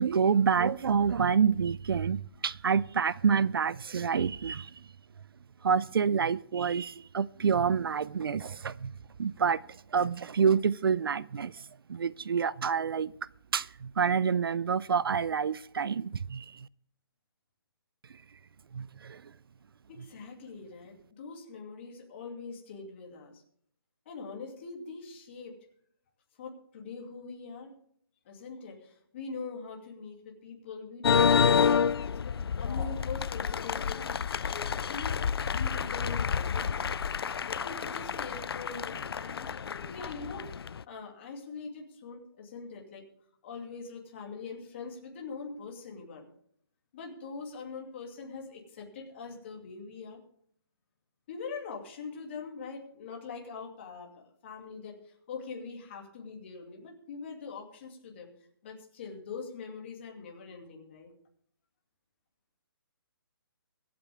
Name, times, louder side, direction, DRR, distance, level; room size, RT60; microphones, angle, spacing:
voice 1, 0.0-4.8 5.6-8.9 9.2-9.6 9.9-13.1 13.5-16.7 18.7-19.2, right 6 dB, 65° right, 0.4 m, -28 dB
voice 2, 19.9-23.4 24.1-25.6 26.4-27.8 28.2-37.0 37.5-43.1 43.4-46.2 46.9-50.2 51.3-58.3 58.6-61.1, left 4 dB, 30° left, 2.6 m, -43 dB
sound 1, 31.0-40.8, left 7 dB, 70° left, 0.4 m, -29 dB
24.0 x 8.7 x 3.5 m
hypercardioid pair, 170°, 13 cm